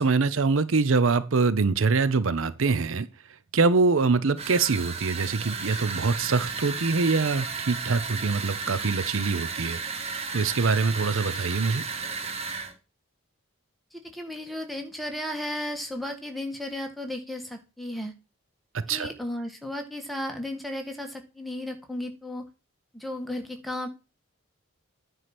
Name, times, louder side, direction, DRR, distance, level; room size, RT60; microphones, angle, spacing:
voice 1, 0.0-3.1 3.5-9.8 10.3-11.8 18.7-19.1, right 4 dB, 70° right, 0.6 m, -24 dB
sound 1, 4.4-12.7, right 5 dB, 30° right, 1.2 m, -34 dB
voice 2, 13.9-18.1 18.9-22.5 22.9-23.9, left 1 dB, ahead, 1.6 m, -34 dB
9.5 x 4.7 x 6.0 m
head